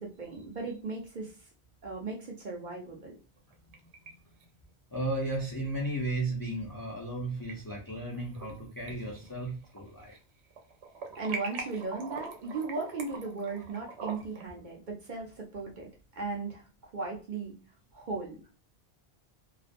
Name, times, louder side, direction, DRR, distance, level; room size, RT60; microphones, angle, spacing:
voice 1, 0.0-1.3 1.8-3.2 11.2-17.5 17.9-18.4, right 4 dB, 55° right, -1 dB, 0.6 m, -37 dB
Marsh Gas, 3.4-4.1 4.4-4.5 6.0-6.1 7.2-7.5 8.0-8.6 8.9-10.2 10.5-14.4, right 4 dB, 85° right, 0.9 m, -42 dB
voice 2, 4.9-10.2, right 2 dB, 30° left, -2 dB, 0.4 m, -34 dB
2.4 x 2.1 x 2.4 m, 0.36 s
omnidirectional pair, 1.1 m